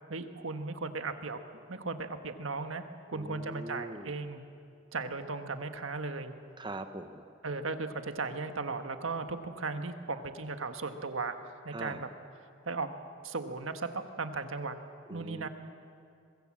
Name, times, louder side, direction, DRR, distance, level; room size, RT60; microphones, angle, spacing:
voice 1, 0.1-1.4 1.7-4.4 4.9-6.3 7.4-11.3 11.6-12.1 12.6-12.9 13.2-14.7 15.1-15.5, right 3 dB, 75° right, 7 dB, 1.5 m, -36 dB
voice 2, 3.1-4.1 6.6-7.2 11.7-12.0 15.1-15.5, right 2 dB, 20° right, 8 dB, 0.9 m, -42 dB
23.0 x 22.0 x 7.5 m, 2.4 s
head